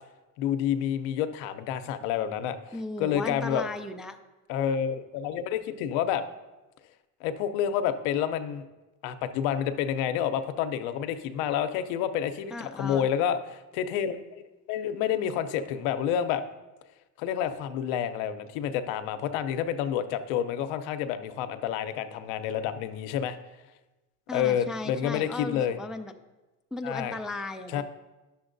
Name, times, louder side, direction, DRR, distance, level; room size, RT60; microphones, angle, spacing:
voice 1, 0.4-3.7 4.5-6.2 7.2-8.6 9.0-14.4 14.7-16.4 17.2-23.4 24.3-25.8 26.8-27.2 27.7-27.8, left 9 dB, 80° left, 10 dB, 0.7 m, -29 dB
voice 2, 2.7-4.2 12.5-13.1 24.3-26.1 26.7-27.8, left 2 dB, ahead, 5 dB, 0.3 m, -36 dB
10.5 x 7.0 x 2.6 m, 1.1 s
supercardioid pair, 90°, 42 cm